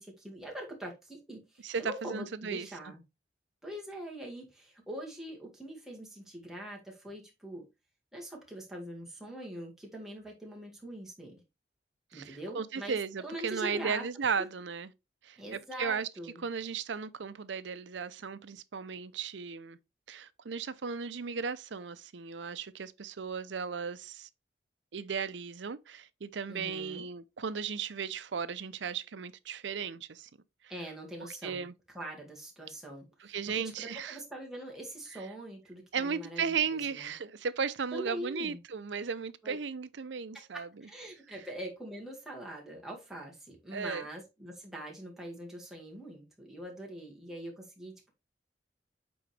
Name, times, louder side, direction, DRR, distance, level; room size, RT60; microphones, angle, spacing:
voice 1, 0.0-3.0 3.6-7.7 8.1-11.4 12.1-14.0 14.4-14.5 15.4-16.4 26.5-27.1 30.7-31.6 31.9-37.1 37.9-38.6 39.4-39.6 40.3-48.1, right 1 dB, ahead, 2.0 m, -43 dB
voice 2, 1.6-2.7 12.1-14.9 15.2-16.1 16.4-19.8 20.1-24.3 24.9-30.3 31.4-31.7 33.2-34.2 35.1-35.2 35.9-40.7 43.7-44.0, right 6 dB, 85° right, 0.6 m, -36 dB
8.7 x 3.9 x 3.3 m
head